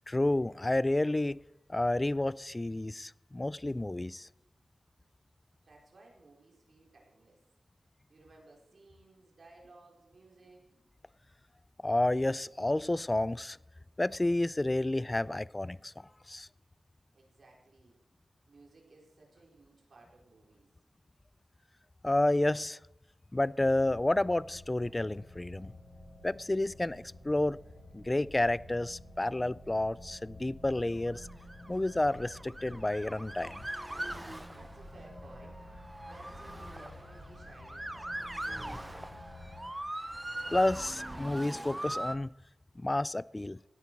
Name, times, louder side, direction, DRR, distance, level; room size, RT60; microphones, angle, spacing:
voice 1, 0.1-1.4 1.7-4.3 11.8-13.6 14.0-16.5 22.0-22.8 23.3-25.7 26.2-27.6 27.9-31.3 31.7-33.6 40.5-42.3 42.8-43.6, left 1 dB, 20° left, 0.3 m, -30 dB
voice 2, 5.7-7.4 8.1-10.6 17.1-18.0 18.5-20.7 34.5-35.6 36.0-39.2, right 2 dB, 55° right, 4.5 m, -57 dB
sound 1, 23.8-39.7, left 1 dB, 75° left, 5.7 m, -51 dB
Motor vehicle (road) / Siren, 31.0-42.2, right 1 dB, 10° right, 0.8 m, -41 dB
16.5 x 9.9 x 4.7 m
wide cardioid pair, 110°, 0 cm